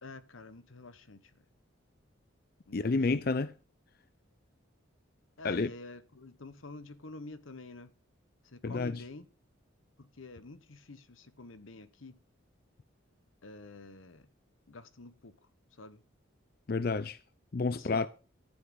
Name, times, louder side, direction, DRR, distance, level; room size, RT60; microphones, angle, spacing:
voice 1, 0.0-1.2 2.7-3.0 5.4-7.9 8.4-9.3 10.0-12.2 13.4-14.3 14.7-15.4 15.8-16.0 17.7-18.1, left 2 dB, 80° left, 1.1 m, -48 dB
voice 2, 2.7-3.5 5.4-5.7 8.6-9.0 16.7-17.2 17.5-18.1, left 3 dB, 50° left, 0.5 m, -30 dB
12.5 x 6.0 x 8.0 m
head